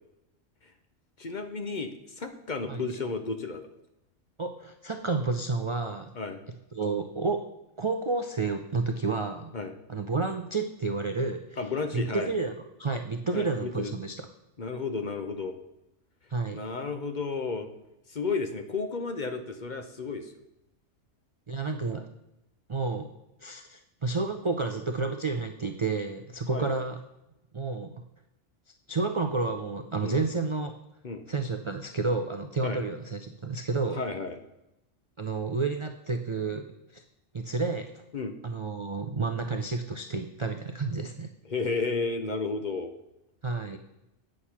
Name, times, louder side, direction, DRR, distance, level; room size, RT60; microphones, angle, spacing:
voice 1, 1.2-3.7 6.2-6.4 9.5-9.7 11.6-12.3 13.3-13.9 14.6-15.5 16.5-17.7 18.1-20.3 26.5-26.8 30.0-30.2 31.0-31.2 32.6-32.8 33.9-34.4 38.1-38.3 41.5-42.9, left 4 dB, 45° left, 6 dB, 0.8 m, -32 dB
voice 2, 4.4-6.1 6.7-7.4 7.8-9.5 9.9-11.6 11.9-12.5 12.8-14.2 16.3-16.6 21.5-22.1 22.7-23.1 23.4-27.0 27.5-27.9 28.9-30.7 31.3-34.0 35.2-36.7 36.9-37.0 37.3-37.9 38.4-41.3 43.4-43.8, right 3 dB, 40° right, 6 dB, 0.4 m, -30 dB
8.7 x 6.5 x 5.7 m, 0.90 s
omnidirectional pair, 1.3 m